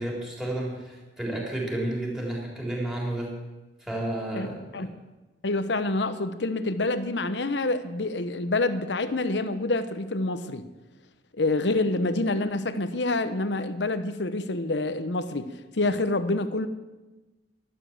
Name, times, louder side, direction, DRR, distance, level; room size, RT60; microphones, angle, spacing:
voice 1, 0.0-3.3 3.8-4.9, right 1 dB, 5° right, -3 dB, 3.8 m, -31 dB
voice 2, 4.3-4.9 5.4-10.6 11.4-16.7, left 2 dB, 75° left, 11 dB, 1.0 m, -27 dB
12.0 x 11.5 x 7.4 m, 1.1 s
head